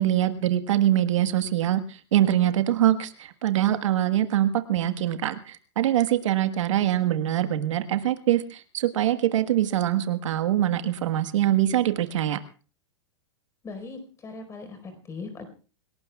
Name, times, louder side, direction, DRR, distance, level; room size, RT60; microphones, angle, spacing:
voice 1, 0.0-12.4, right 12 dB, 75° right, 9 dB, 1.5 m, -24 dB
voice 2, 13.6-15.4, left 3 dB, 20° left, 7 dB, 4.6 m, -39 dB
27.0 x 18.5 x 2.4 m, 0.38 s
hypercardioid pair, 135°, 16 cm